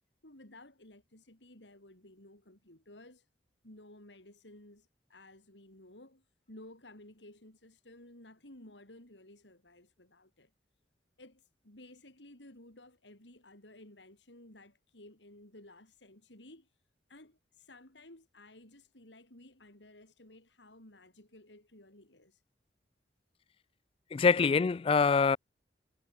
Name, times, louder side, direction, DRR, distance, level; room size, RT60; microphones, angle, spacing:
voice 1, 0.2-3.3 3.6-10.5 11.2-16.8 17.1-22.4, left 1 dB, 85° left, 5.7 m, -55 dB
voice 2, 24.1-25.4, left 5 dB, 30° left, 0.3 m, -24 dB
head